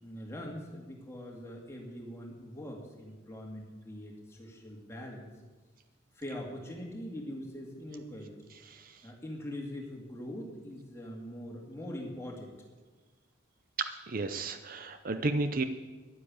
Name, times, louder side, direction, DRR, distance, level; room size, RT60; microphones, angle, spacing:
voice 1, 0.0-5.2 6.1-8.3 9.0-12.5, left 1 dB, 15° left, 0 dB, 2.4 m, -42 dB
voice 2, 8.7-9.1 13.8-15.6, right 3 dB, 45° right, 9 dB, 0.6 m, -33 dB
11.0 x 9.7 x 8.8 m, 1.3 s
head